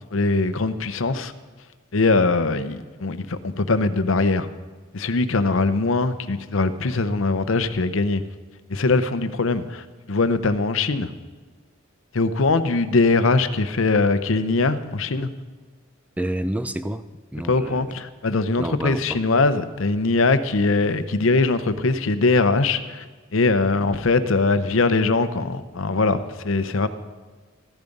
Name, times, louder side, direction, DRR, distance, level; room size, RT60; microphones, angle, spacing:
voice 1, 0.1-1.3 1.9-4.5 4.9-8.2 8.7-11.1 12.1-15.3 17.5-23.0 23.3-26.9, left 3 dB, 65° left, 12 dB, 0.7 m, -21 dB
voice 2, 16.2-18.0 18.6-19.2, right 1 dB, 5° right, 12 dB, 0.4 m, -29 dB
14.5 x 10.5 x 5.2 m, 1.4 s
head